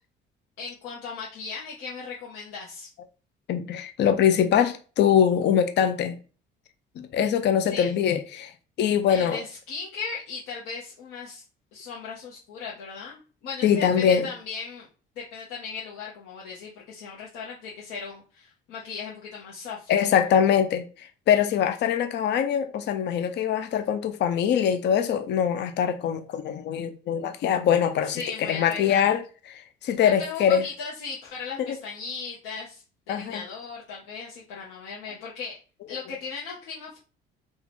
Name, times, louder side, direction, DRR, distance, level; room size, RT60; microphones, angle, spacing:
voice 1, 0.6-2.9 7.7-7.9 9.1-11.4 11.7-14.9 15.2-19.9 28.0-29.1 30.0-35.5 35.9-37.0, left 5 dB, 80° left, 1.0 m, -37 dB
voice 2, 3.5-6.2 7.0-8.5 8.8-9.4 13.6-14.3 19.9-29.2 29.5-30.6 31.6-31.8 33.1-33.4, left 8 dB, 55° left, 0.5 m, -23 dB
2.8 x 2.4 x 4.2 m
supercardioid pair, 75°, 21 cm